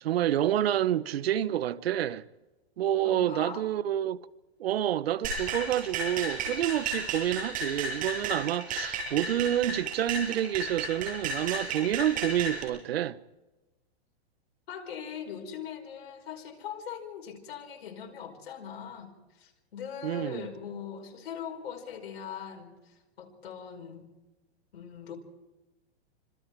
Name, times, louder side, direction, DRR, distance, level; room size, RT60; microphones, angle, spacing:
voice 1, 0.0-2.2 2.8-4.2 4.6-13.2 20.0-20.5, right 11 dB, 70° right, 1.1 m, -28 dB
voice 2, 3.0-3.7 14.7-24.1 24.7-25.2, left 8 dB, 70° left, 5.2 m, -41 dB
sound 1, 5.2-12.6, right 3 dB, 25° right, 7.2 m, -33 dB
27.0 x 26.0 x 4.7 m
hypercardioid pair, 150°, 32 cm